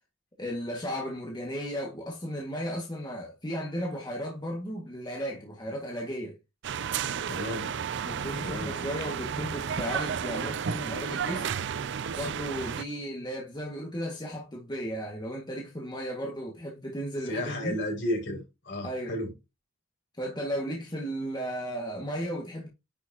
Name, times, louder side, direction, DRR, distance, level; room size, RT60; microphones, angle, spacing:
voice 1, 0.4-6.4 7.6-7.7 8.0-11.5 12.2-17.8 18.8-19.2 20.2-22.7, equal, 20° left, 1.9 m, -35 dB
sound 1, 6.6-12.8, right 7 dB, 60° right, 0.5 m, -32 dB
voice 2, 7.3-7.7 8.4-8.7 17.3-19.3, left 1 dB, 60° left, 5.7 m, -33 dB
10.0 x 6.3 x 2.9 m
head